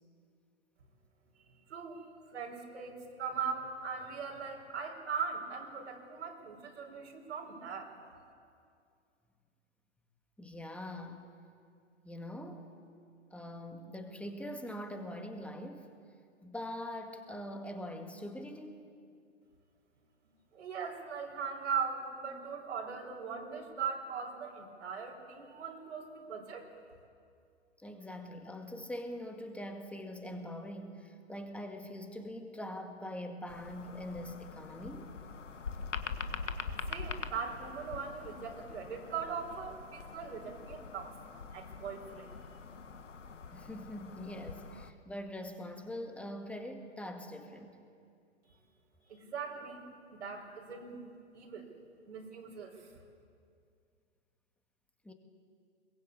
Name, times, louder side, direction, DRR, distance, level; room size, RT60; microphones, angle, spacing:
voice 1, 1.5-7.9 20.5-26.7 36.9-41.2 41.5-42.3 49.1-49.8 50.1-51.0 51.3-51.7 52.1-52.9, right 6 dB, 70° right, -1 dB, 4.7 m, -40 dB
voice 2, 10.4-11.3 12.0-12.7 13.3-15.9 16.4-18.9 27.8-35.1 43.5-47.8 55.0-55.1, left 1 dB, 5° left, 5 dB, 2.0 m, -43 dB
sound 1, 33.5-44.9, left 5 dB, 85° left, 1.5 m, -44 dB
22.5 x 21.0 x 8.5 m, 2.4 s
hypercardioid pair, 120°, 36 cm